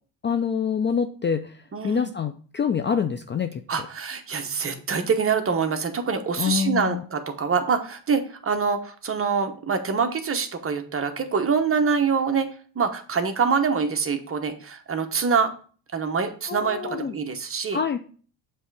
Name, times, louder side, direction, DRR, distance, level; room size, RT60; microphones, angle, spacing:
voice 1, 0.2-3.6 6.4-7.0 16.5-17.1 17.7-18.0, left 7 dB, 25° left, 8 dB, 0.4 m, -26 dB
voice 2, 1.7-2.1 3.7-12.5 12.7-15.5 15.9-17.8, right 5 dB, 30° right, 7 dB, 1.1 m, -25 dB
7.3 x 3.4 x 4.7 m, 0.42 s
supercardioid pair, 85°, 48 cm